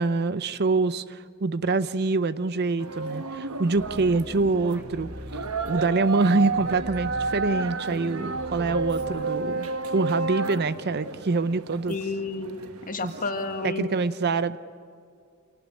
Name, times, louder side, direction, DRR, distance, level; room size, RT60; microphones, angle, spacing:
voice 1, 0.0-5.1 5.6-12.0 13.0-13.1 13.6-14.6, right 3 dB, 50° right, 14 dB, 0.6 m, -25 dB
sound 1, 2.8-13.7, right 4 dB, 75° right, 1.2 m, -32 dB
sound 2, 3.7-5.7 6.1-7.5 7.9-9.5, equal, 10° right, 1.4 m, -41 dB
voice 2, 11.9-13.9, left 3 dB, 40° left, 5 dB, 2.0 m, -31 dB
27.5 x 18.0 x 9.9 m, 2.3 s
head